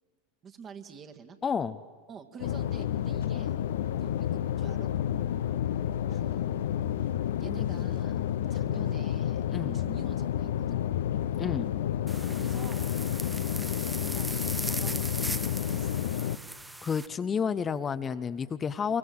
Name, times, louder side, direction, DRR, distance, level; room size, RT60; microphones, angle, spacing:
voice 1, 0.4-1.4 2.1-3.6 4.0-4.9 6.1-6.4 7.4-8.2 8.5-9.4 9.7-10.8 12.2-12.9 13.8-16.1, right 6 dB, 35° right, 5 dB, 2.0 m, -47 dB
voice 2, 1.4-1.8 9.5-9.8 11.4-11.7 16.8-19.0, left 6 dB, 25° left, 11 dB, 0.8 m, -30 dB
sound 1, 2.4-16.4, left 10 dB, 70° left, 0.8 m, -30 dB
sound 2, 12.1-17.1, right 1 dB, 5° right, 0.8 m, -38 dB
27.5 x 23.0 x 7.8 m, 1.5 s
hypercardioid pair, 90°, 0 cm